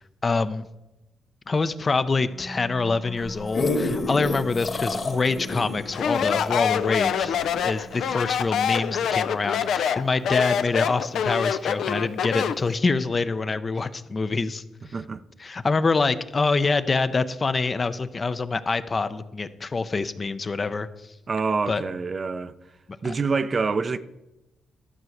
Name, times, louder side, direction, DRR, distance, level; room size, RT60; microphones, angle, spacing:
voice 1, 0.2-0.7 1.5-14.6 15.4-20.9 21.7-21.8 23.0-23.1, left 4 dB, 35° left, 0.6 m, -25 dB
sound 1, 2.1-12.9, equal, ahead, 1.0 m, -44 dB
sound 2, 3.2-7.8 8.4-8.5, left 2 dB, 50° left, 2.0 m, -29 dB
Speech, 5.9-12.7, left 8 dB, 80° left, 0.5 m, -25 dB
voice 2, 21.3-22.5 23.0-24.0, right 4 dB, 40° right, 0.5 m, -26 dB
12.5 x 4.7 x 7.8 m
cardioid pair, 90°, 0 cm